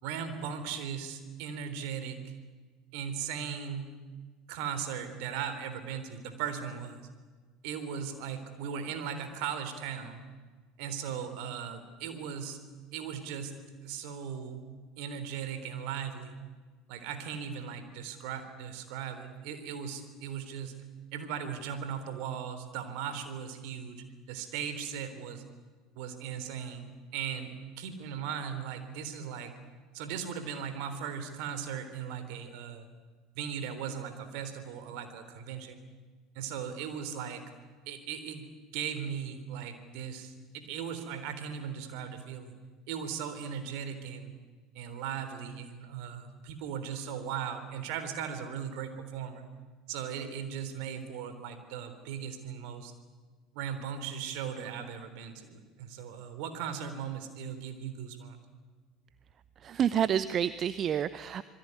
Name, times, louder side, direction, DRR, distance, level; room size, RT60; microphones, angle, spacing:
voice 1, 0.0-2.3 2.9-3.9 4.5-7.0 7.6-10.2 10.8-12.6 12.9-13.6 13.8-14.6 15.0-16.3 16.9-20.7 21.1-25.4 26.0-29.5 29.9-32.9 33.4-35.8 36.4-37.4 37.9-38.5 38.7-42.5 42.9-44.3 44.7-49.5 49.9-52.9 53.5-58.4, right 7 dB, 60° right, 9 dB, 3.7 m, -38 dB
voice 2, 59.6-61.4, right 9 dB, 40° right, 15 dB, 0.9 m, -29 dB
26.5 x 22.0 x 9.7 m, 1.4 s
figure-of-eight pair, 70°, 0 cm